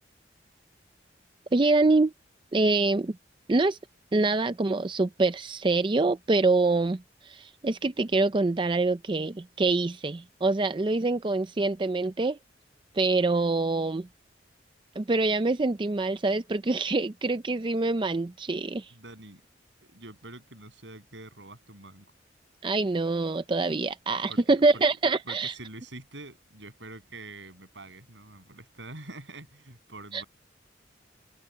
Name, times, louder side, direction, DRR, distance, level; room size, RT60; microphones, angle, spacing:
voice 1, 1.5-2.1 2.5-3.2 3.5-3.8 4.1-12.4 12.9-14.1 15.0-18.9 22.6-25.5 30.1-30.2, right 3 dB, 25° right, 0.5 m, -25 dB
voice 2, 18.9-19.4 19.8-22.1 24.3-24.8 25.3-30.3, right 2 dB, 85° right, 7.3 m, -45 dB
head